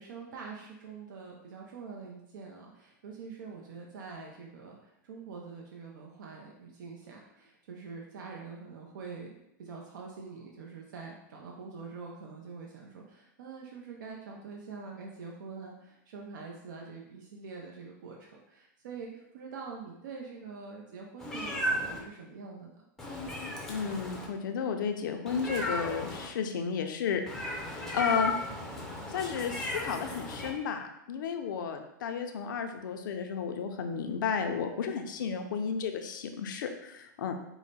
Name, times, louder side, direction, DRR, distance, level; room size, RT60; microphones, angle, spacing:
voice 1, 0.0-9.3 9.6-22.9, right 5 dB, 75° right, -1 dB, 0.7 m, -45 dB
Meow, 21.2-22.0 23.0-24.3 25.3-26.3 27.3-30.5, left 1 dB, 5° left, 0.6 m, -35 dB
voice 2, 23.7-27.6 27.9-28.4 29.1-37.5, left 6 dB, 75° left, 5 dB, 0.6 m, -33 dB
4.8 x 2.2 x 4.1 m, 0.82 s
supercardioid pair, 155°, 11 cm